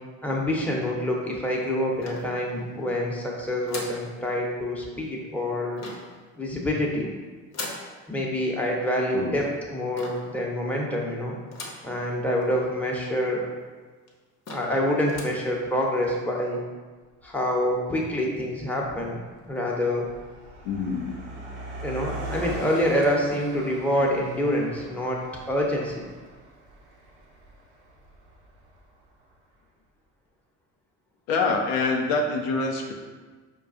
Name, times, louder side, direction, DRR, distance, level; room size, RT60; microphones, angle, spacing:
voice 1, 0.2-5.8 6.4-7.1 8.1-11.4 11.8-13.4 14.5-16.6 17.2-19.2 19.5-20.1 21.8-25.2 25.5-25.9, left 1 dB, 5° left, -2 dB, 0.9 m, -26 dB
sound 1, 2.0-2.8 3.7-4.1 5.8-6.2 7.5-7.9 10.0-10.3 11.5-11.9 12.4-12.5 12.7-12.8 13.6-13.7 14.1-14.2 14.4-14.8 15.1-15.4, left 2 dB, 45° left, 0.8 m, -38 dB
Car passing by, 17.2-17.3 18.1-18.4 18.6-29.0, right 2 dB, 70° right, 0.8 m, -41 dB
voice 2, 20.6-21.2 31.3-32.9, left 3 dB, 85° left, 1 dB, 0.5 m, -25 dB
4.9 x 2.3 x 2.5 m, 1.4 s
hypercardioid pair, 55°, 38 cm